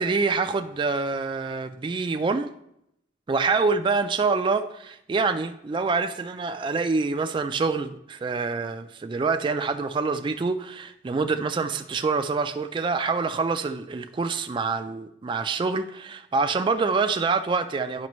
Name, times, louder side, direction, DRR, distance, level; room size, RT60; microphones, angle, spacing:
voice 1, 0.0-2.5 3.3-18.1, right 4 dB, 25° right, 8 dB, 0.3 m, -26 dB
11.0 x 5.1 x 3.0 m, 0.78 s
head